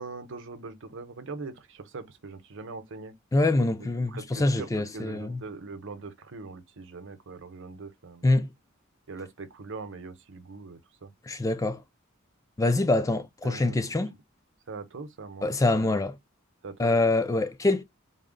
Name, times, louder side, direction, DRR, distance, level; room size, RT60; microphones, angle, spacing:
voice 1, 0.0-3.1 3.8-8.4 9.1-11.1 13.4-13.8 14.7-15.9 16.6-17.0, right 4 dB, 60° right, 0.8 m, -41 dB
voice 2, 3.3-5.4 8.2-8.5 11.3-11.8 12.6-14.2 15.4-16.2 16.8-17.8, left 2 dB, 15° left, 0.4 m, -25 dB
4.0 x 2.1 x 3.8 m
head